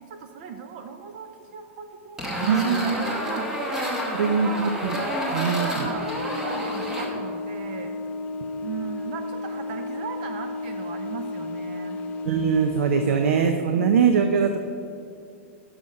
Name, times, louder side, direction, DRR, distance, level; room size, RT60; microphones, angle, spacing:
voice 1, 0.0-4.7 5.1-8.0 8.6-12.0, right 7 dB, 40° right, 6 dB, 0.5 m, -38 dB
sound 1, 2.2-7.1, equal, 5° right, 1.0 m, -29 dB
voice 2, 2.4-3.0 4.1-5.0 5.3-5.9 12.2-14.6, right 6 dB, 85° right, 6 dB, 0.6 m, -22 dB
sound 2, 5.6-13.4, left 3 dB, 20° left, 0.4 m, -33 dB
9.4 x 6.3 x 5.3 m, 2.4 s
supercardioid pair, 175°, 7 cm